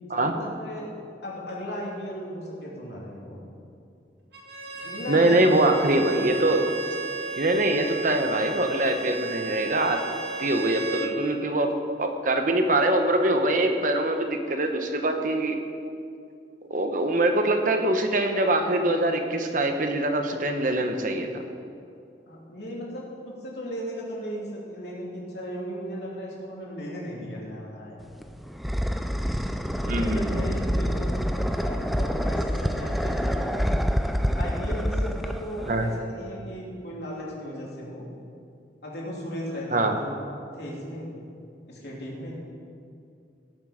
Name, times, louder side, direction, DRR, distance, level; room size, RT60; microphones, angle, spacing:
voice 1, 0.0-0.9 1.2-3.4 4.8-5.7 22.3-28.0 29.8-33.8 34.3-38.0 38.8-40.1 40.5-41.1 41.7-42.3, equal, 65° left, -4 dB, 3.0 m, -36 dB
Bowed string instrument, 4.3-11.2, right 4 dB, 70° right, 1.8 m, -34 dB
voice 2, 5.1-6.6 7.4-10.0 10.4-11.7 12.0-15.6 16.7-21.3 29.9-30.5 35.7-35.9 39.7-40.0, right 1 dB, 45° right, 5 dB, 0.9 m, -23 dB
sound 1, 28.0-36.0, equal, ahead, 0.3 m, -27 dB
17.5 x 7.4 x 5.1 m, 2.5 s
head